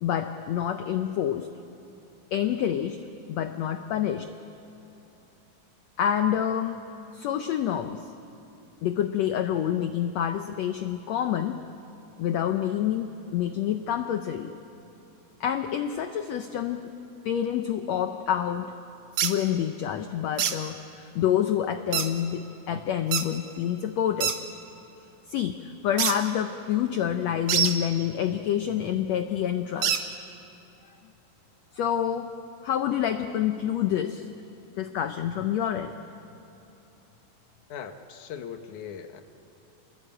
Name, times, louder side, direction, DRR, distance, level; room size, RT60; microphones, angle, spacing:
voice 1, 0.0-1.5 2.3-3.0 3.3-4.3 6.0-6.8 7.1-8.1 8.8-11.6 12.2-14.5 15.4-16.9 17.2-18.7 19.2-24.3 25.3-30.1 31.7-32.4 32.6-34.3 34.7-35.9, left 10 dB, 90° left, 8 dB, 1.5 m, -27 dB
sound 1, 19.2-19.3 20.4-20.6 21.9-22.1 23.1-23.3 24.2-24.4 26.0-26.2 27.5-27.7 29.8-30.0, right 8 dB, 60° right, 1.7 m, -24 dB
voice 2, 37.7-39.2, left 8 dB, 65° left, 7 dB, 2.4 m, -39 dB
28.0 x 21.5 x 8.9 m, 3.0 s
omnidirectional pair, 4.1 m